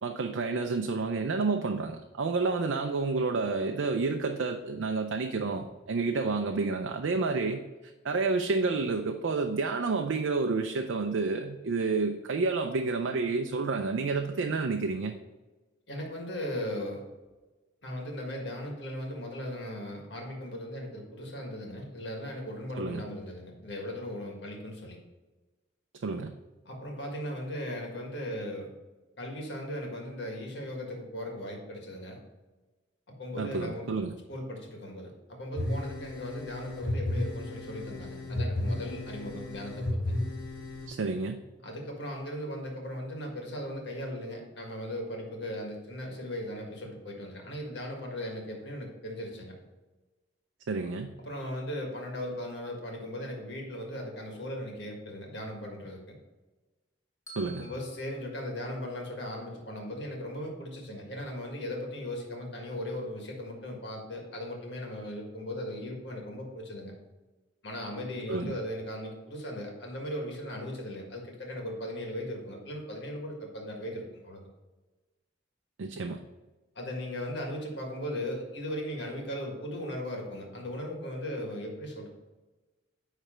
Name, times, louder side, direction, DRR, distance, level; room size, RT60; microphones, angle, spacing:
voice 1, 0.0-7.6 8.0-15.1 22.8-23.0 26.0-26.3 33.4-34.1 40.9-41.4 50.7-51.1 57.4-57.7 68.3-68.5 75.8-76.2, right 4 dB, 80° right, 4 dB, 0.5 m, -29 dB
voice 2, 15.9-17.0 17.8-25.0 26.6-28.7 29.2-32.2 33.2-34.0 34.3-40.0 41.6-49.5 51.2-56.2 57.6-66.9 67.6-74.4 76.7-82.1, left 1 dB, 60° left, 0 dB, 1.7 m, -38 dB
sound 1, 35.5-40.9, left 1 dB, 45° left, 1.7 m, -34 dB
Bell, 57.3-59.4, right 1 dB, 15° left, 0.9 m, -52 dB
9.9 x 3.3 x 4.4 m, 1.2 s
head